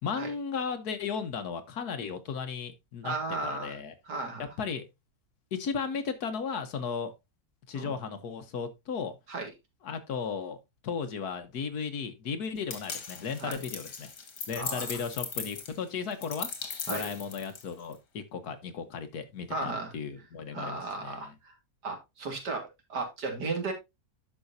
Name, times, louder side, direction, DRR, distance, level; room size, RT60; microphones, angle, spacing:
voice 1, 0.0-3.1 3.4-3.9 4.6-4.8 5.5-7.1 7.7-9.1 9.8-10.6 10.8-14.1 14.5-16.5 16.9-21.3, left 6 dB, 70° left, 1.6 m, -35 dB
voice 2, 3.0-3.8 4.1-4.4 7.7-7.9 9.3-9.5 13.4-13.6 14.5-14.9 16.9-17.1 19.5-19.9 20.5-21.5 21.8-23.7, right 3 dB, 85° right, 2.9 m, -35 dB
sound 1, 12.7-17.9, left 6 dB, 85° left, 2.1 m, -38 dB
10.5 x 6.5 x 2.7 m
omnidirectional pair, 1.7 m